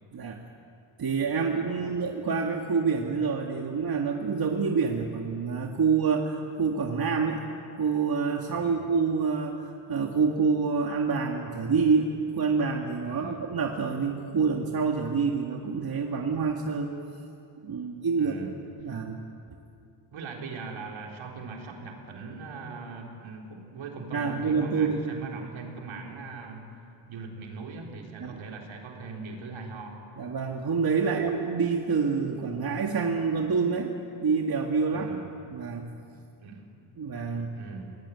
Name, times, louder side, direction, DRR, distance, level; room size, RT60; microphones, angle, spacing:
voice 1, 1.0-7.4 7.8-16.9 17.6-18.4 18.8-19.2 24.1-25.1 28.2-28.4 30.2-33.9 34.2-35.2 35.5-35.9 37.0-37.6, right 5 dB, 50° right, 1 dB, 2.1 m, -27 dB
voice 2, 1.7-2.1 8.5-8.9 13.1-13.4 18.2-18.6 20.1-26.8 27.1-30.0 31.1-31.2 34.9-35.2 36.4-36.7 37.6-38.0, right 4 dB, 75° right, 0 dB, 4.1 m, -40 dB
23.0 x 18.5 x 9.6 m, 2.5 s
cardioid pair, 75°, 48 cm